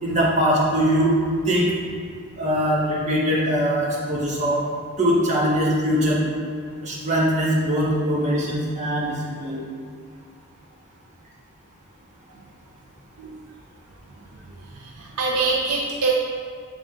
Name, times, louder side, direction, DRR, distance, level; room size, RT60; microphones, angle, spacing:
voice 1, 0.0-1.1 1.5-1.7 2.4-4.6 5.0-6.2 6.8-9.6, equal, 30° right, -6 dB, 1.4 m, -21 dB
voice 2, 14.3-16.1, right 4 dB, 85° right, -3 dB, 0.7 m, -26 dB
7.3 x 3.9 x 3.7 m, 2.2 s
head